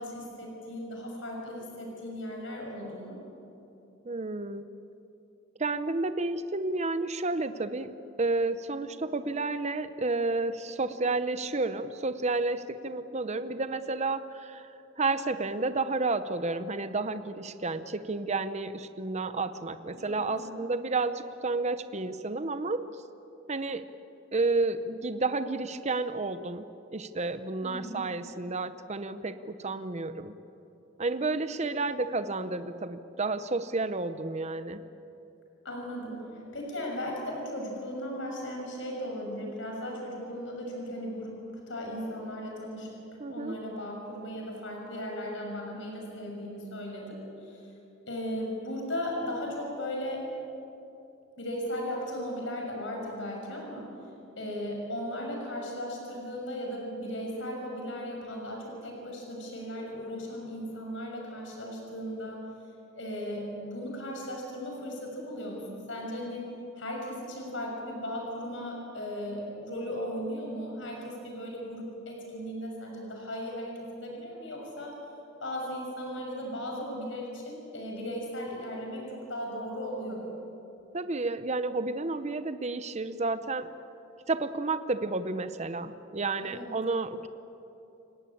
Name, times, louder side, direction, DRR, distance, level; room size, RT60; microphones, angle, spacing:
voice 1, 0.0-3.2 19.9-20.7 27.6-28.0 31.6-31.9 32.2-32.3 35.6-43.0 43.3-47.7 48.1-50.4 51.4-53.9 54.4-62.4 62.9-66.5 66.8-75.0 75.4-80.3 86.4-86.7, equal, 70° left, 0 dB, 6.3 m, -37 dB
voice 2, 4.1-4.7 5.6-7.9 8.2-14.7 15.0-22.9 23.5-23.9 24.3-30.3 31.0-34.8 43.2-43.6 80.9-83.7 84.3-87.3, right 3 dB, 35° right, 11 dB, 0.8 m, -31 dB
29.0 x 18.5 x 8.6 m, 2.9 s
head